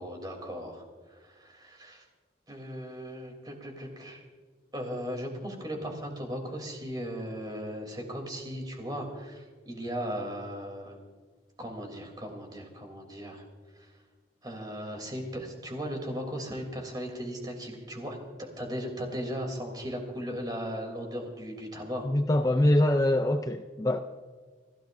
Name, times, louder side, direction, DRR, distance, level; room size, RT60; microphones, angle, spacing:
voice 1, 0.0-2.0 2.5-4.2 4.7-10.9 11.6-13.4 13.7-13.9 14.4-22.1, equal, 20° right, 2 dB, 3.1 m, -37 dB
voice 2, 22.0-24.0, left 1 dB, 20° left, 7 dB, 0.4 m, -24 dB
30.0 x 14.5 x 2.6 m, 1.5 s
head